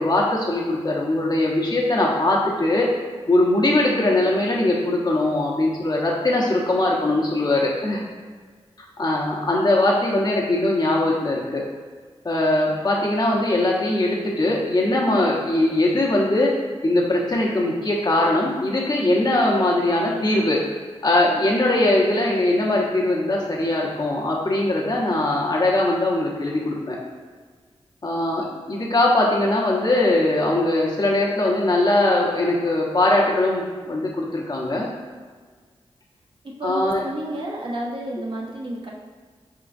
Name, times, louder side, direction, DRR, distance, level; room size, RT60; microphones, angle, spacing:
voice 1, 0.0-2.9 3.3-8.0 9.0-11.7 12.2-16.5 16.8-20.6 21.0-27.0 28.0-34.9 36.6-37.0, left 1 dB, 40° left, -3 dB, 1.1 m, -21 dB
voice 2, 36.4-38.9, right 1 dB, 50° right, -2 dB, 0.9 m, -31 dB
4.9 x 3.8 x 2.6 m, 1.5 s
cardioid pair, 55°, 11 cm